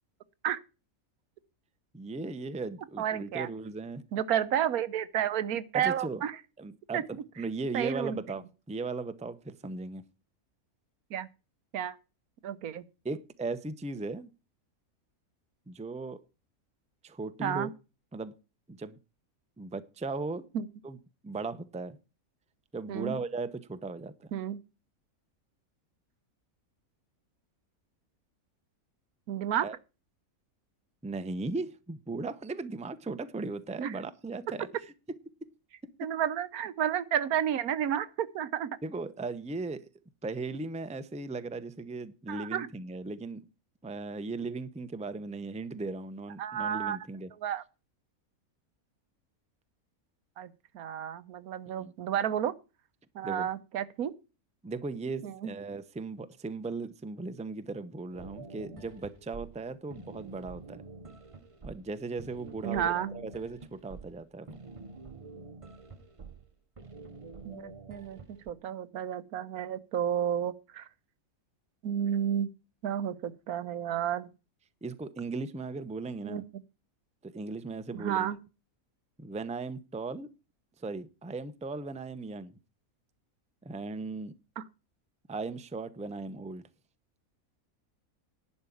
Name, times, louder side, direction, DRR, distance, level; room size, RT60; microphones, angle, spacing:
voice 1, 1.9-4.0 5.7-6.2 6.6-10.0 13.0-14.3 15.7-16.2 17.0-17.7 18.1-18.3 18.7-19.0 19.6-20.5 20.8-21.0 21.2-22.0 22.7-24.3 29.6-29.8 31.0-34.7 38.8-39.9 40.2-43.4 43.8-47.3 51.7-51.9 53.2-53.5 54.6-60.8 61.6-64.6 74.8-76.4 77.2-78.3 79.2-80.3 80.8-82.5 83.6-84.3 85.3-86.6, right 3 dB, 10° right, 0.5 m, -37 dB
voice 2, 3.0-3.5 4.1-6.4 6.9-7.0 7.7-8.2 11.1-11.3 11.7-12.0 12.4-12.8 17.4-17.7 20.5-20.7 22.9-23.1 24.3-24.6 29.3-29.7 33.8-33.9 36.0-38.7 42.3-42.7 46.4-47.0 47.4-47.6 50.4-52.5 53.1-54.1 55.2-55.5 62.6-63.1 67.4-68.2 68.5-70.9 71.8-72.5 72.8-74.3 76.2-76.4 77.9-78.4 84.6-84.7, right 9 dB, 90° right, 1.3 m, -31 dB
sound 1, 58.1-68.5, right 4 dB, 30° right, 0.8 m, -47 dB
11.0 x 5.5 x 8.5 m
omnidirectional pair, 1.5 m